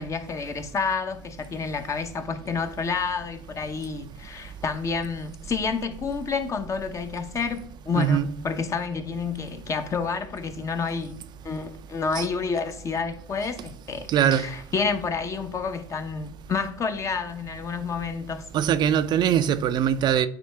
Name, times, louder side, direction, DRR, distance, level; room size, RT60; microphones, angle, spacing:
voice 1, 0.0-18.5, left 5 dB, 30° left, 0.8 m, -29 dB
voice 2, 7.9-8.3 12.2-12.3 14.1-14.5 18.5-20.3, right 9 dB, 45° right, 0.4 m, -22 dB
9.2 x 3.6 x 3.3 m
supercardioid pair, 95°, 10 cm